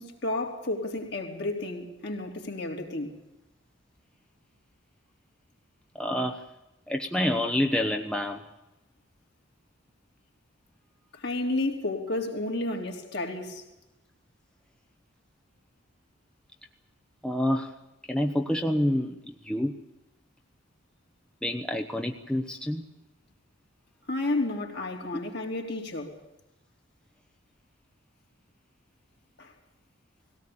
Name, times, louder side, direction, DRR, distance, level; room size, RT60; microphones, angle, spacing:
voice 1, 0.0-3.2 11.1-13.6 24.1-26.2 29.4-29.5, left 2 dB, 50° left, 3.7 m, -31 dB
voice 2, 5.9-6.4 6.9-8.4 17.2-17.8 18.1-19.7 21.4-22.8, left 1 dB, 5° left, 1.0 m, -28 dB
20.0 x 17.5 x 8.8 m
head